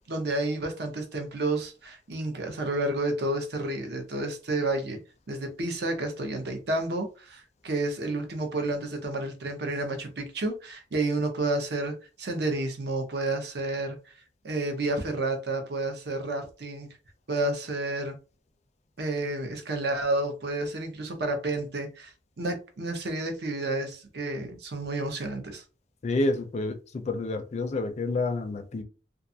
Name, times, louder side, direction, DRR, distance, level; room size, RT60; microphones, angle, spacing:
voice 1, 0.1-5.0 5.3-14.0 14.4-16.9 17.3-18.2 19.0-25.6, right 2 dB, 70° right, 0.7 m, -30 dB
voice 2, 26.0-28.8, left 2 dB, 40° left, 0.4 m, -29 dB
2.4 x 2.3 x 2.6 m
head